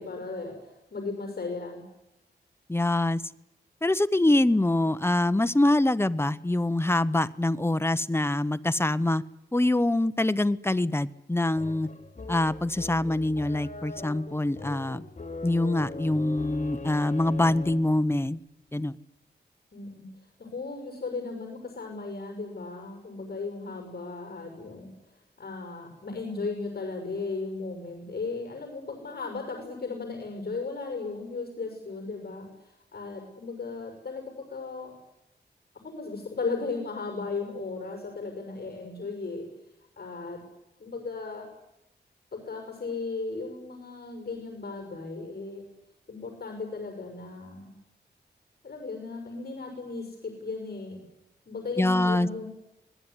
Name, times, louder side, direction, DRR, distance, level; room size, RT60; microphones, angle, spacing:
voice 1, 0.0-1.8 19.7-20.0 20.4-24.9 25.4-34.2 34.5-34.9 35.7-39.4 40.0-40.4 40.8-41.5 42.3-45.7 46.1-47.8 48.6-51.0 51.5-52.5, left 3 dB, 60° left, 4 dB, 6.3 m, -36 dB
voice 2, 2.7-3.2 3.8-9.2 9.5-11.9 12.3-15.1 15.4-18.4 18.7-19.0 51.8-52.3, left 1 dB, 15° left, 13 dB, 1.0 m, -24 dB
sound 1, 11.6-18.0, left 3 dB, 40° left, 3.3 m, -40 dB
26.0 x 19.5 x 9.9 m, 0.88 s
wide cardioid pair, 85°, 18 cm